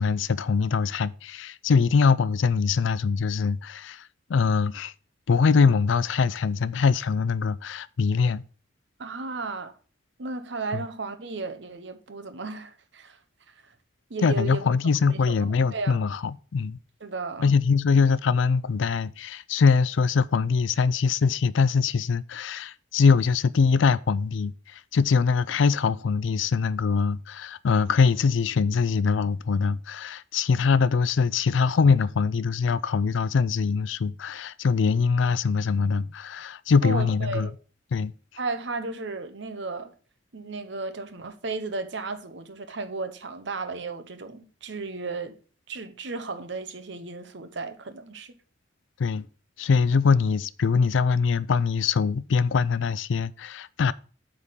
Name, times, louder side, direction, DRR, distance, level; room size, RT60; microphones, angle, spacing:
voice 1, 0.0-4.9 5.3-8.4 10.7-10.8 14.2-16.2 16.5-16.8 17.4-37.5 37.9-38.1 49.0-49.3 49.6-53.9, left 5 dB, 70° left, 0.4 m, -23 dB
voice 2, 9.0-9.7 10.2-13.2 13.5-13.7 14.1-14.7 15.1-16.0 17.0-17.5 36.8-37.5 38.4-39.9 40.3-45.4 45.7-48.3, right 3 dB, 60° right, 0.9 m, -34 dB
8.4 x 3.7 x 6.5 m
head